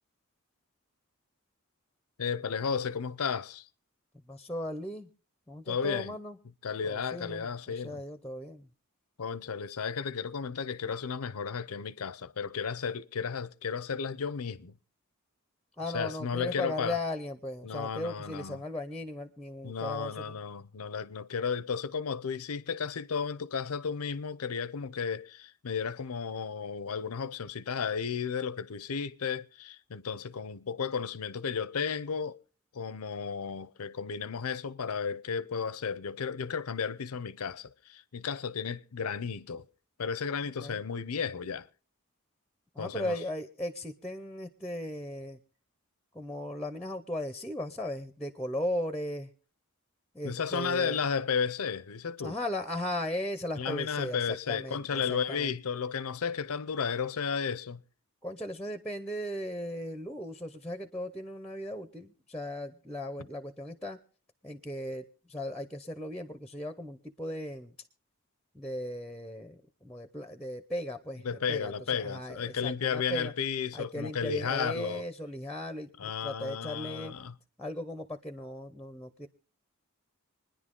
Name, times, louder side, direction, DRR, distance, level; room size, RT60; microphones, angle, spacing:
voice 1, 2.2-3.7 5.7-6.2 6.6-8.0 9.2-14.7 15.9-17.0 17.6-18.6 19.6-32.4 32.7-39.7 40.0-41.7 42.8-43.2 50.2-52.4 53.6-57.8 71.2-75.0 76.0-77.3, left 6 dB, 85° left, 0.6 m, -33 dB
voice 2, 4.1-5.1 5.5-6.4 6.8-8.7 15.8-20.4 40.6-40.8 42.7-45.4 46.1-49.3 50.1-51.1 52.2-55.5 58.2-64.0 64.4-67.8 68.5-73.3 73.7-77.1 77.6-79.3, left 1 dB, 5° left, 0.6 m, -37 dB
26.0 x 10.5 x 3.7 m
head